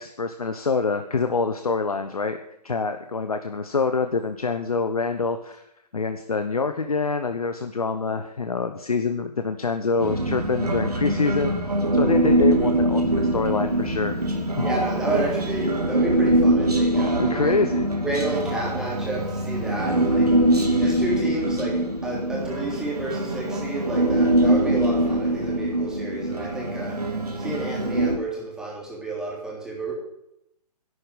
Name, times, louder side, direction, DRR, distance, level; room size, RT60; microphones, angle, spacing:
voice 1, 0.0-2.4 2.6-5.6 5.9-11.5 11.9-14.1 14.4-14.6 17.2-17.9, left 4 dB, 65° left, 8 dB, 1.2 m, -26 dB
Human voice, 10.0-28.2, right 1 dB, 70° right, 3.0 m, -23 dB
voice 2, 14.6-17.6 18.0-20.3 20.8-27.0 27.4-29.9, right 2 dB, 5° right, -3 dB, 3.1 m, -31 dB
11.5 x 8.8 x 9.9 m, 0.83 s
figure-of-eight pair, 135°, 21 cm